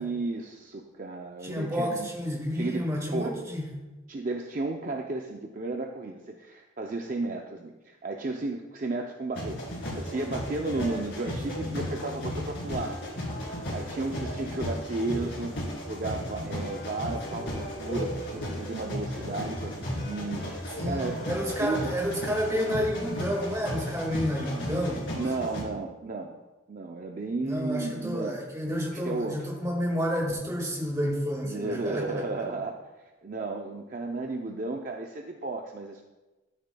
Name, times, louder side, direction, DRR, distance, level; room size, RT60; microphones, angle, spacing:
voice 1, 0.0-2.1 2.5-2.9 3.1-3.5 4.1-13.2 13.7-21.3 21.6-21.9 25.1-26.4 26.7-28.4 28.9-29.4 31.4-36.0, right 3 dB, 45° right, 2 dB, 0.5 m, -34 dB
voice 2, 1.4-3.7 20.8-25.0 25.3-25.4 27.4-32.2, equal, 15° right, -1 dB, 1.8 m, -30 dB
sound 1, 9.3-25.6, equal, 55° left, 2.7 m, -35 dB
13.0 x 7.1 x 2.2 m, 1.1 s
head